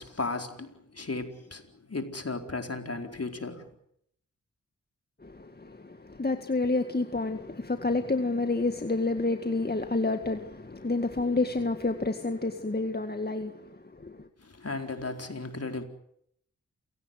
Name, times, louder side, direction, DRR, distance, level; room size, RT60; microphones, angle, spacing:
voice 1, 0.0-3.7 14.4-15.8, left 3 dB, 50° left, 4.5 m, -35 dB
voice 2, 5.2-14.3, left 3 dB, 30° left, 1.9 m, -29 dB
28.5 x 17.5 x 9.4 m
cardioid pair, 45°, 32 cm